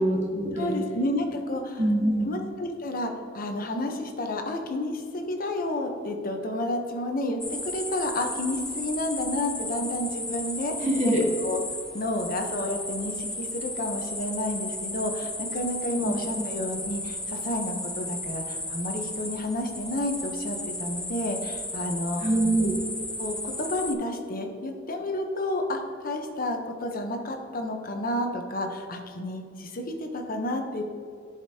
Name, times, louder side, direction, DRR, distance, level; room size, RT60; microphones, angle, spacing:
voice 1, 0.0-0.8 1.8-2.3 10.8-11.2 16.0-16.1 22.2-22.7, right 1 dB, 35° right, -3 dB, 1.4 m, -24 dB
voice 2, 0.5-1.8 2.2-11.1 11.4-11.6 11.9-22.2 23.2-30.8, left 1 dB, 50° left, 4 dB, 0.8 m, -31 dB
sound 1, 7.4-23.9, left 1 dB, 5° left, 0.3 m, -34 dB
10.5 x 5.1 x 2.8 m, 2.2 s
head